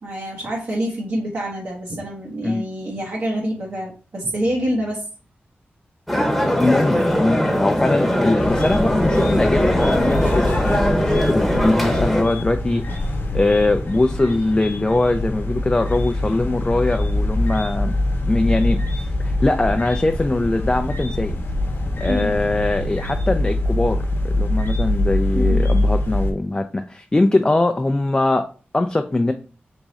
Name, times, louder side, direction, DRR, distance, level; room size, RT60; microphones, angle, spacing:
voice 1, 0.0-5.0 11.5-11.8 22.0-22.4 25.3-25.7, equal, 65° right, -4 dB, 1.0 m, -26 dB
sound 1, 6.1-12.2, equal, ahead, 0.9 m, -20 dB
voice 2, 6.6-13.0 13.3-18.0 18.3-21.4 22.0-28.5 28.7-29.3, left 2 dB, 20° left, 6 dB, 0.3 m, -21 dB
sound 2, 8.4-26.3, left 1 dB, 70° left, 0.8 m, -24 dB
3.6 x 3.0 x 4.0 m, 0.37 s
wide cardioid pair, 95°, 4 cm